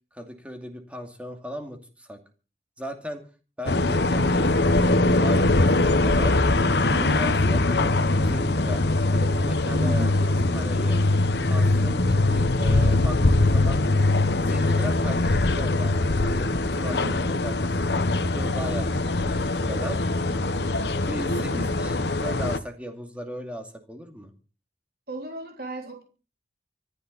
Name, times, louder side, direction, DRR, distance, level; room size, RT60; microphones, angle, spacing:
voice 1, 0.1-2.2 2.8-3.2 3.6-6.4 7.0-8.8 9.1-11.0 11.4-13.8 14.3-15.9 16.2-17.0 17.3-17.6 18.1-20.0 21.1-24.3, equal, 5° right, 4 dB, 2.4 m, -37 dB
sound 1, 3.7-22.6, left 2 dB, 75° left, 1.0 m, -22 dB
voice 2, 6.9-7.4 9.7-10.2 16.9-17.3 21.2-21.7 25.1-26.0, right 1 dB, 55° right, 2 dB, 3.5 m, -36 dB
25.5 x 10.5 x 4.1 m, 0.36 s
head